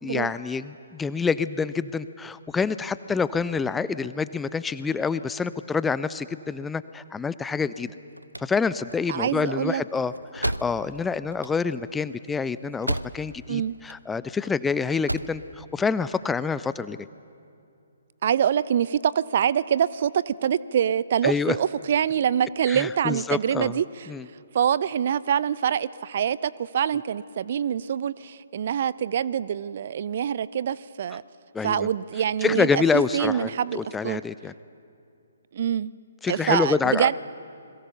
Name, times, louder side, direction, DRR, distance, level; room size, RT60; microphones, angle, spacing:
voice 1, 0.0-7.9 8.4-17.1 21.2-21.6 22.7-23.8 24.1-24.3 31.5-31.9 32.4-34.5 36.2-37.2, left 5 dB, 10° left, 15 dB, 0.5 m, -27 dB
sound 1, 7.9-13.5 13.7-14.5 14.9-15.4, right 1 dB, 85° right, 0.7 m, -33 dB
voice 2, 9.1-9.8 13.5-13.7 18.2-23.8 24.5-31.2 31.6-34.2 35.5-35.9 36.3-37.2, right 9 dB, 45° right, 19 dB, 0.5 m, -25 dB
28.5 x 22.0 x 6.9 m, 2.5 s
figure-of-eight pair, 130°, 0 cm